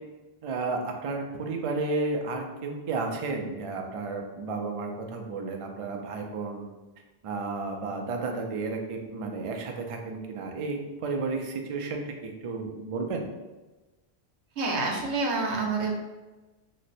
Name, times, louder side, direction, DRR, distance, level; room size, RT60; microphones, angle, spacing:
voice 1, 0.4-6.7 7.2-12.1 12.4-13.3, right 3 dB, 60° right, 2 dB, 0.3 m, -32 dB
voice 2, 14.6-15.9, right 3 dB, 85° right, 0 dB, 1.0 m, -27 dB
3.1 x 2.0 x 4.1 m, 1.1 s
omnidirectional pair, 1.1 m